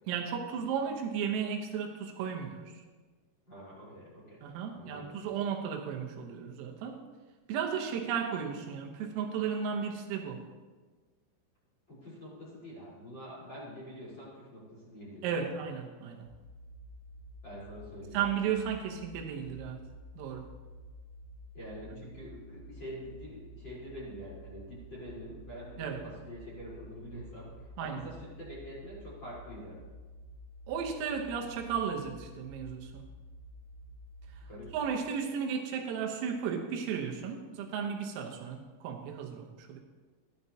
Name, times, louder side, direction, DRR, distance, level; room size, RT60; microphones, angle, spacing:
voice 1, 0.1-2.8 4.4-7.0 7.5-10.4 15.2-16.3 18.1-19.8 20.2-20.5 25.8-26.0 27.8-28.0 30.7-33.1 34.3-34.5 34.7-39.8, right 7 dB, 80° right, 1 dB, 3.6 m, -34 dB
voice 2, 3.5-4.4 4.7-5.4 11.9-15.3 17.4-18.2 21.5-29.8 34.5-34.7, equal, 25° left, -8 dB, 3.6 m, -46 dB
sound 1, 16.2-34.8, equal, 55° left, 3.4 m, -50 dB
14.0 x 11.5 x 2.7 m, 1.4 s
omnidirectional pair, 6.0 m